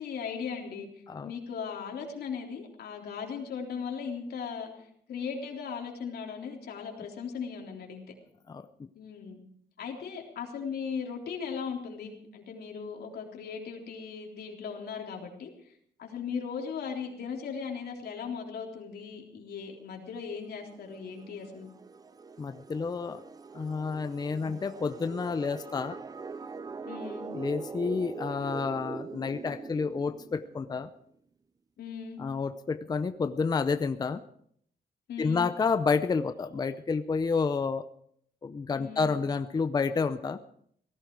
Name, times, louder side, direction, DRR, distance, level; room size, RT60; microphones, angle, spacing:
voice 1, 0.0-0.9 1.2-8.0 8.9-9.4 9.8-15.5 16.0-21.7 26.8-27.3 31.8-32.2 35.1-35.4 38.7-39.0, left 6 dB, 85° left, 1 dB, 3.6 m, -38 dB
sound 1, 20.3-30.9, right 4 dB, 25° right, 0.6 m, -43 dB
voice 2, 22.4-23.2 23.5-26.0 27.3-30.9 32.2-34.2 35.2-37.8 38.4-40.4, left 5 dB, 25° left, 11 dB, 0.6 m, -30 dB
18.0 x 15.5 x 4.7 m, 0.64 s
wide cardioid pair, 160°, 16 cm